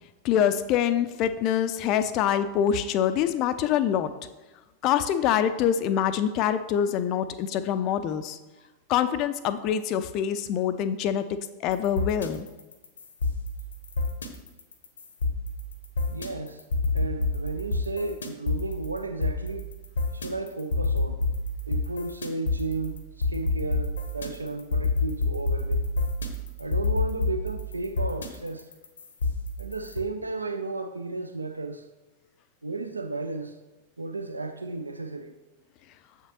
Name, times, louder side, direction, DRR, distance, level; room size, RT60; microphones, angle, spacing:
voice 1, 0.2-4.1 4.8-8.4 8.9-11.3 11.6-12.5, left 9 dB, 40° left, 0.3 m, -25 dB
sound 1, 11.7-30.0, left 3 dB, 70° left, 0.7 m, -28 dB
voice 2, 16.1-16.6 16.9-19.7 20.1-21.2 21.6-25.9 26.6-28.7 29.6-31.9 32.6-33.6 34.0-35.3, right 3 dB, 80° right, 0.3 m, -34 dB
7.3 x 5.8 x 2.9 m
figure-of-eight pair, 90°, 0 cm